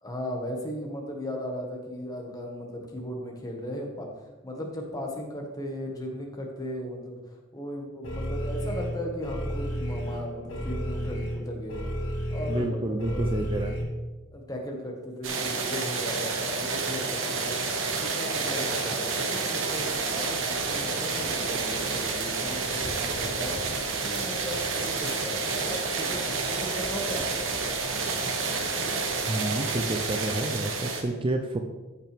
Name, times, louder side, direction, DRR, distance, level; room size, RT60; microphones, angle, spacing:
voice 1, 0.0-4.1 4.4-11.9 12.3-13.7 14.3-17.6 18.0-23.6 24.0-27.5, equal, 20° left, 0 dB, 1.6 m, -37 dB
sound 1, 8.0-13.8, equal, 70° left, 1.9 m, -32 dB
voice 2, 12.5-13.8 29.3-31.6, right 2 dB, 25° right, 4 dB, 0.5 m, -29 dB
sound 2, 15.2-31.0, right 4 dB, 70° right, 1.3 m, -29 dB
14.5 x 5.6 x 3.5 m, 1.2 s
head